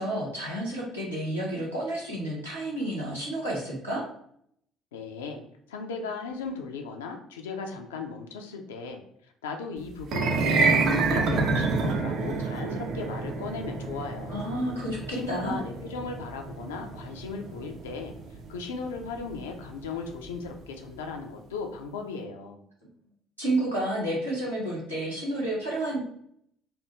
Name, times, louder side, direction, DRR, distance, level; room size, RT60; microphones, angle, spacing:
voice 1, 0.0-4.0 14.3-15.6 23.4-26.0, right 1 dB, 90° right, -8 dB, 1.0 m, -30 dB
voice 2, 4.9-5.4 5.7-9.0 9.4-14.4 15.1-18.1 18.5-22.6, left 4 dB, 70° left, 4 dB, 0.4 m, -37 dB
sound 1, 10.0-20.3, right 4 dB, 50° right, 0.4 m, -28 dB
3.2 x 2.3 x 2.9 m, 0.68 s
figure-of-eight pair, 50°, 0 cm